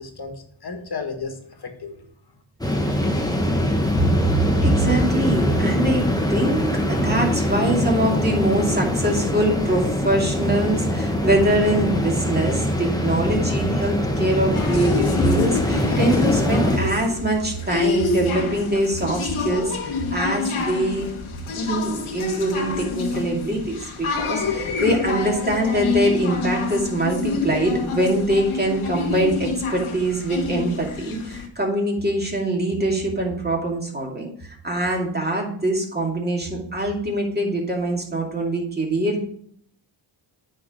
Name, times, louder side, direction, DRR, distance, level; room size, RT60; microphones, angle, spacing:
voice 1, 0.0-2.1, left 4 dB, 50° left, 5 dB, 1.7 m, -34 dB
sound 1, 2.6-16.8, left 1 dB, 10° left, 1.2 m, -23 dB
voice 2, 4.6-21.1 21.5-39.2, right 1 dB, 20° right, -1 dB, 2.4 m, -23 dB
sound 2, 14.5-31.5, left 4 dB, 80° left, 1.5 m, -27 dB
9.6 x 4.6 x 5.0 m, 0.63 s
cardioid pair, 90°, 48 cm